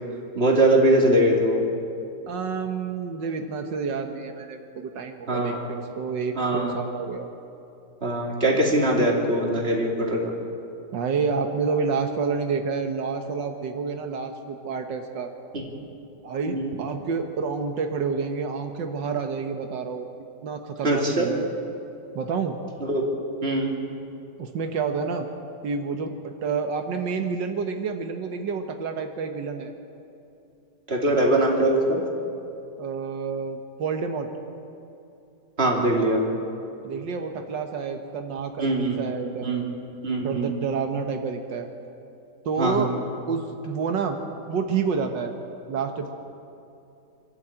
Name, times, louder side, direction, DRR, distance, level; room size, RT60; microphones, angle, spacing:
voice 1, 0.3-1.6 5.3-5.7 6.4-6.8 8.0-10.3 15.5-15.6 16.5-16.7 20.8-21.2 22.9-23.0 23.4-23.7 30.9-32.0 35.6-36.2 38.6-39.0 39.4-39.6 40.0-40.5 42.6-42.9, right 1 dB, 35° right, -1 dB, 3.3 m, -22 dB
voice 2, 2.3-7.3 10.9-15.3 16.2-20.1 20.4-21.4 22.2-22.5 24.4-25.3 25.6-29.7 32.8-34.3 36.8-39.5 40.2-41.7 42.4-42.9 43.3-44.2 44.5-45.3 45.7-46.1, right 5 dB, 90° right, 5 dB, 1.9 m, -29 dB
26.0 x 12.5 x 8.9 m, 2.7 s
omnidirectional pair, 1.9 m